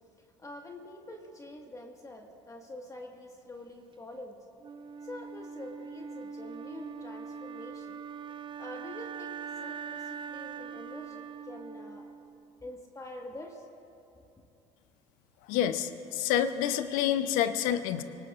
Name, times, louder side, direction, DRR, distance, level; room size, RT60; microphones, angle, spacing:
voice 1, 0.0-4.5 5.0-8.0 8.6-12.1 12.6-13.7, left 1 dB, 20° left, 1 dB, 1.8 m, -46 dB
Wind instrument woodwind instrument, 4.6-12.6, right 6 dB, 35° right, 0.7 m, -42 dB
voice 2, 15.5-18.0, left 10 dB, 70° left, 10 dB, 0.9 m, -28 dB
27.0 x 18.5 x 2.6 m, 2.8 s
hypercardioid pair, 70°, 15 cm